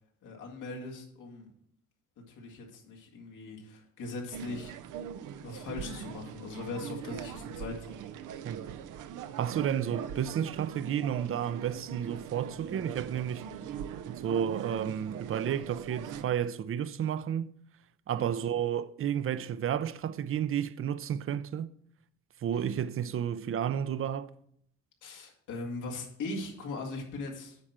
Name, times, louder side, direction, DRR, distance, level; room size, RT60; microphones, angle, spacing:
voice 1, 0.2-1.5 2.3-4.7 5.4-8.0 18.1-18.4 22.5-22.7 25.0-27.6, left 3 dB, 90° left, 2.2 m, -40 dB
sound 1, 4.3-16.3, right 8 dB, 85° right, 0.7 m, -41 dB
voice 2, 9.4-13.5 14.1-17.5 18.1-21.7 22.4-24.3, right 9 dB, 45° right, 0.6 m, -31 dB
9.6 x 4.3 x 7.4 m
cardioid pair, 90°, 30 cm